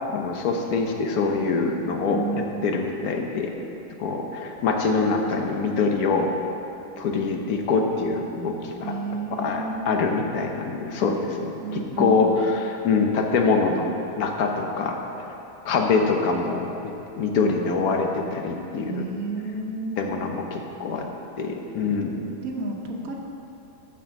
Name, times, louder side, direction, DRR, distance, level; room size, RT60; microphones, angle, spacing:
voice 1, 0.1-3.5 4.0-6.3 7.0-9.0 9.3-13.9 14.1-15.0 15.6-19.0 20.0-21.1 21.4-22.2, left 4 dB, 75° left, 3 dB, 1.3 m, -24 dB
voice 2, 2.1-2.5 8.8-9.9 11.6-12.3 17.4-17.6 18.8-20.0 22.4-23.1, right 3 dB, 70° right, 1 dB, 1.4 m, -31 dB
7.0 x 6.0 x 6.9 m, 2.8 s
omnidirectional pair, 1.6 m